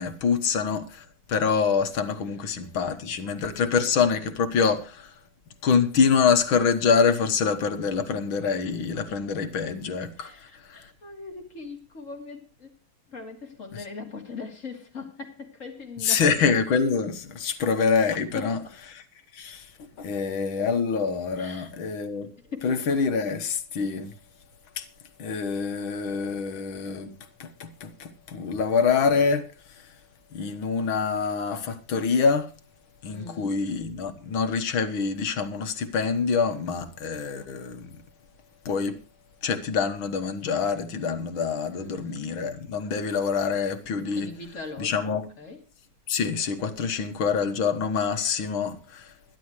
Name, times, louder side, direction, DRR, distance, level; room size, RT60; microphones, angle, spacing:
voice 1, 0.0-5.1 5.6-10.3 10.7-10.8 16.0-18.6 18.9-19.0 19.3-19.7 20.0-22.3 22.6-24.1 24.8-24.9 25.2-27.1 27.4-29.5 29.8-29.9 30.3-32.5 33.0-37.9 38.7-39.0 39.4-44.3 44.8-45.3 46.1-49.4, left 5 dB, 75° left, 2.1 m, -25 dB
voice 2, 10.2-12.7 13.1-16.3 17.5-17.6 18.3-18.7 21.4-21.7 22.4-22.8 33.1-33.5 41.7-42.3 44.1-45.6, left 4 dB, 35° left, 3.2 m, -40 dB
22.5 x 10.5 x 3.1 m
omnidirectional pair, 2.3 m